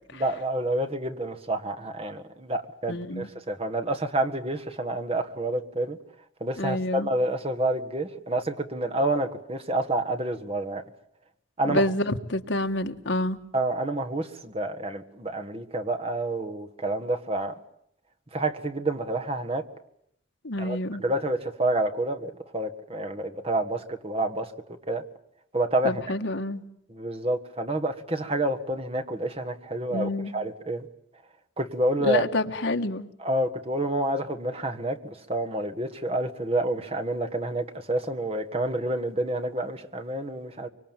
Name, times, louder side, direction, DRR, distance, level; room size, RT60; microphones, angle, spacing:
voice 1, 0.1-6.0 6.4-10.8 11.6-11.9 13.5-17.5 18.3-19.6 20.6-24.5 24.9-25.0 25.5-26.0 26.9-30.9 31.6-32.2 33.2-40.7, right 1 dB, 30° right, 6 dB, 1.6 m, -28 dB
voice 2, 2.9-3.3 6.6-7.1 11.6-13.4 20.4-21.0 25.8-26.6 29.9-30.3 32.0-33.1, left 1 dB, 65° left, 6 dB, 1.6 m, -28 dB
25.0 x 24.5 x 9.0 m, 0.72 s
head